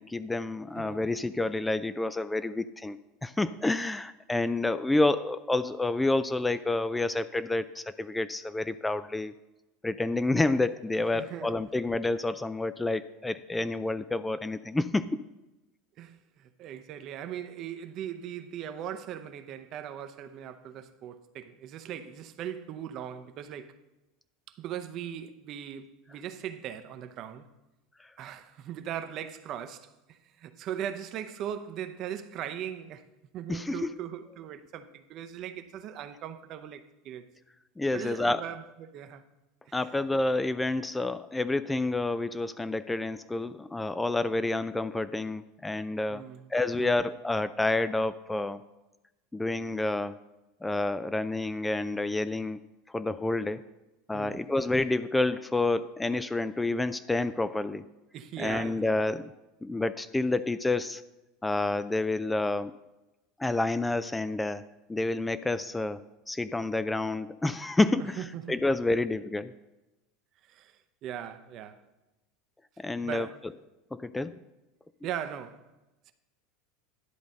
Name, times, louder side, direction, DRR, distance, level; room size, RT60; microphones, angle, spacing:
voice 1, 0.0-9.3 9.8-15.2 28.0-28.1 33.5-33.9 37.8-38.4 39.7-46.2 46.5-48.6 49.3-50.2 50.6-53.6 54.1-57.8 58.4-59.3 59.6-61.0 61.4-62.8 63.4-69.5 72.8-73.3 73.9-74.4, left 2 dB, 10° left, 0.3 m, -29 dB
voice 2, 11.1-11.7 16.0-23.8 24.5-27.5 28.2-33.0 33.3-37.3 37.9-39.2 39.7-39.8 46.1-46.5 46.8-47.0 54.1-54.4 58.1-58.9 68.2-68.6 70.5-71.8 73.0-73.4 75.0-75.6 76.1-76.2, right 9 dB, 50° right, 0.7 m, -39 dB
11.0 x 4.0 x 6.5 m
hypercardioid pair, 80°, 0 cm